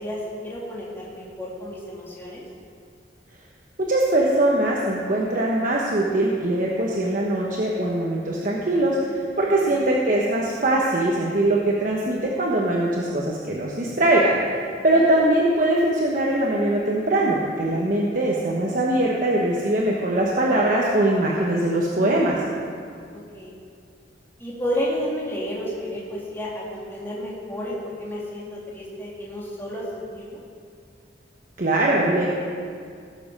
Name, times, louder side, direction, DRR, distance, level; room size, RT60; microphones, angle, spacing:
voice 1, 0.0-2.4 9.5-9.9 14.9-15.0 23.1-23.5 24.4-30.4, equal, 15° left, -5 dB, 2.0 m, -31 dB
voice 2, 3.8-14.4 14.8-22.4 31.6-32.3, right 1 dB, 50° right, -3 dB, 1.1 m, -21 dB
17.5 x 7.3 x 5.4 m, 2.2 s
head